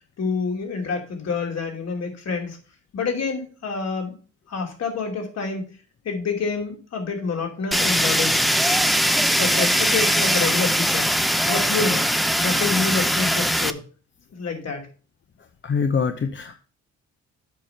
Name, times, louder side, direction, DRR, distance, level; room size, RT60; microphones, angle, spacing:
voice 1, 0.2-2.6 2.9-4.1 4.5-5.6 6.0-9.0 9.4-11.1 11.4-12.1 12.4-13.8 14.3-14.9, left 4 dB, 60° left, 2 dB, 2.8 m, -27 dB
Fire, 7.7-13.7, equal, ahead, 0.6 m, -21 dB
voice 2, 15.6-16.6, left 5 dB, 40° left, 7 dB, 0.9 m, -24 dB
7.7 x 5.1 x 5.7 m, 0.38 s
cardioid pair, 90°, 30 cm